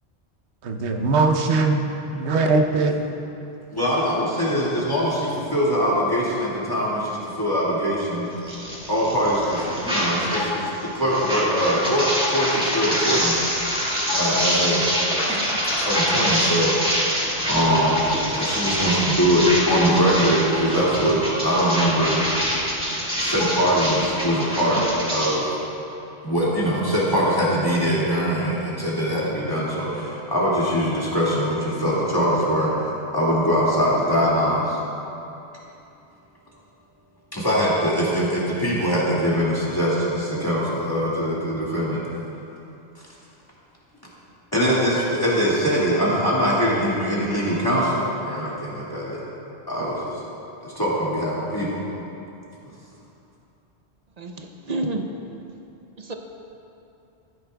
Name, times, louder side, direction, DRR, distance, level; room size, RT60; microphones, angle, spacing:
voice 1, 0.6-1.8 2.1-3.0, right 3 dB, 85° right, 4 dB, 1.1 m, -20 dB
voice 2, 3.7-8.3 8.9-13.4 14.1-14.8 15.3-15.4 15.8-16.7 17.5-18.1 18.4-22.2 23.2-24.8 25.1-25.5 26.2-32.7 33.1-34.8 37.3-42.0 44.5-49.2 49.7-50.2 50.6-51.8 52.6-52.7, equal, 20° left, -7 dB, 2.0 m, -22 dB
sound 1, 8.4-10.5 10.7-25.3, equal, 5° right, 1.9 m, -25 dB
sound 2, 9.9-24.7, left 3 dB, 55° left, 0.3 m, -35 dB
voice 3, 54.2-55.1 56.0-56.1, right 2 dB, 45° right, 4 dB, 0.6 m, -29 dB
14.5 x 9.6 x 2.3 m, 2.8 s
omnidirectional pair, 1.1 m